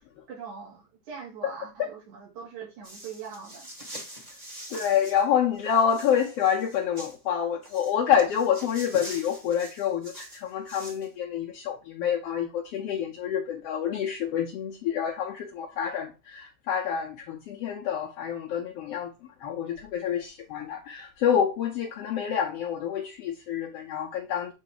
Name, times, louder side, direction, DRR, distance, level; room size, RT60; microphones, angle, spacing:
voice 1, 0.3-3.7, right 6 dB, 75° right, 3.7 m, -41 dB
sound 1, 2.8-5.2 5.5-7.2 7.6-11.1, right 1 dB, 25° right, 0.8 m, -44 dB
voice 2, 4.7-19.1 19.4-24.5, left 8 dB, 80° left, 1.4 m, -27 dB
7.5 x 3.1 x 4.7 m
omnidirectional pair, 3.4 m